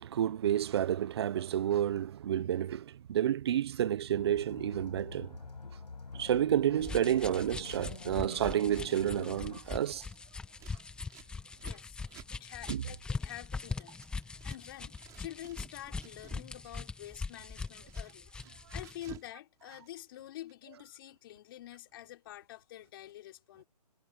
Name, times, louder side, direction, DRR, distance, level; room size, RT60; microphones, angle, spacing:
voice 1, 0.0-5.4 6.2-10.0 12.7-12.8, right 10 dB, 40° right, 1.1 m, -30 dB
sound 1, 4.2-9.6, left 4 dB, 85° left, 6.9 m, -46 dB
sound 2, 6.8-19.0, left 4 dB, 5° left, 1.6 m, -41 dB
Scissors, 10.5-14.6 14.9-16.5 16.8-19.3 19.6-20.5, right 15 dB, 15° right, 4.9 m, -55 dB
voice 2, 11.6-12.0 12.3-13.9 14.4-18.3 18.7-23.7, left 14 dB, 35° left, 5.3 m, -47 dB
hypercardioid pair, 155°, 21 cm